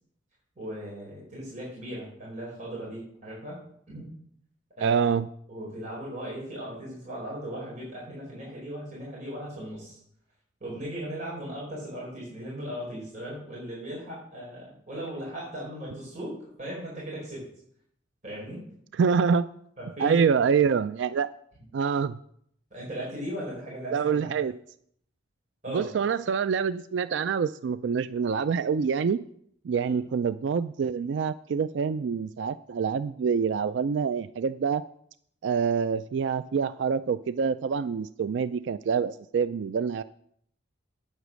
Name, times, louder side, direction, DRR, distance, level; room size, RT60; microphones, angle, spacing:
voice 1, 0.6-3.6 3.9-4.1 4.8-5.0 5.5-10.0 10.6-17.5 18.2-18.6 19.8-20.2 22.7-24.3 25.6-25.9 29.8-30.0, equal, 40° right, -6 dB, 4.6 m, -37 dB
voice 2, 4.8-5.3 18.9-19.5 20.0-21.3 21.7-22.2 23.9-24.5 25.7-29.2 29.6-34.8 35.4-40.0, right 6 dB, 70° right, 14 dB, 0.3 m, -26 dB
9.4 x 8.2 x 6.2 m, 0.68 s
head